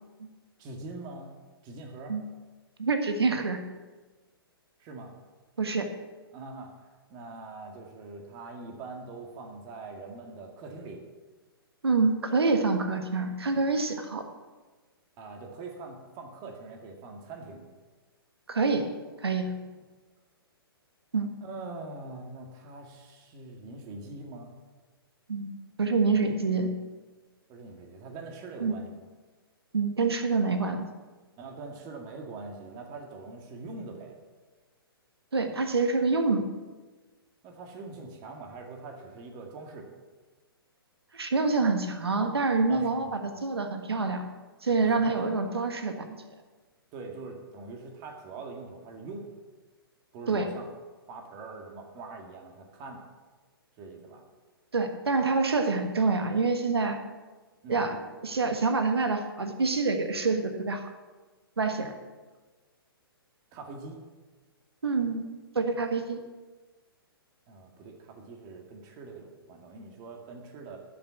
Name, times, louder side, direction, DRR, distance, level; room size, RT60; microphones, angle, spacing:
voice 1, 0.6-1.4 1.6-2.2 4.8-5.1 6.3-11.0 15.2-17.6 21.4-24.5 27.5-28.9 31.4-34.1 37.4-39.9 42.6-43.2 44.8-45.3 46.9-49.3 50.1-50.7 51.1-53.0 53.8-54.2 57.6-58.0 63.5-64.0 67.5-70.8, right 3 dB, 30° right, 2 dB, 2.1 m, -43 dB
voice 2, 2.8-3.6 5.6-5.9 11.8-14.2 18.5-18.9 19.2-19.5 21.1-21.3 25.3-26.7 28.6-28.7 29.7-30.9 35.3-36.5 41.1-44.2 44.6-46.2 50.3-50.5 54.7-57.0 57.7-60.9 61.6-61.9 64.8-66.2, right 4 dB, 85° right, 6 dB, 1.4 m, -26 dB
12.5 x 6.0 x 8.3 m, 1.3 s
hypercardioid pair, 125°, 13 cm